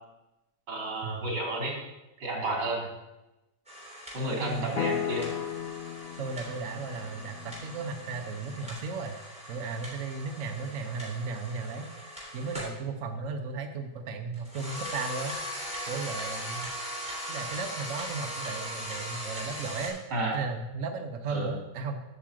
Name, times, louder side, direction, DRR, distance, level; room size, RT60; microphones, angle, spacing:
voice 1, 0.7-1.7 2.2-2.9 4.1-5.3 20.1-20.4 21.3-21.5, right 1 dB, 85° right, -1 dB, 3.2 m, -31 dB
voice 2, 2.4-2.9 4.2-4.9 6.2-9.2 9.5-11.9 12.3-15.4 15.9-16.7 17.3-20.0 20.3-22.0, right 4 dB, 55° right, 5 dB, 1.1 m, -35 dB
sound 1, 3.7-12.8 14.3-19.9, equal, 5° right, 3.2 m, -40 dB
sound 2, 4.8-8.9, left 8 dB, 60° left, 1.2 m, -36 dB
8.4 x 6.2 x 7.5 m, 1.0 s
omnidirectional pair, 1.8 m